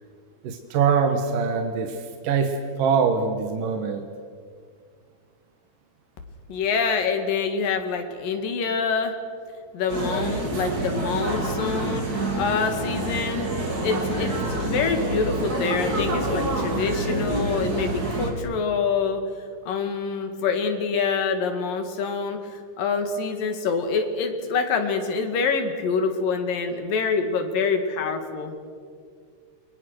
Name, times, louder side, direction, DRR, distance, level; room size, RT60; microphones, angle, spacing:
voice 1, 0.4-4.1, right 6 dB, 70° right, 5 dB, 3.0 m, -23 dB
voice 2, 6.5-9.1 9.7-12.1 12.4-13.4 13.8-19.2 19.7-28.6, left 5 dB, 75° left, 6 dB, 3.7 m, -26 dB
sound 1, 9.9-18.3, right 2 dB, 25° right, 3.1 m, -27 dB
30.0 x 23.5 x 6.5 m, 2.1 s
omnidirectional pair, 4.0 m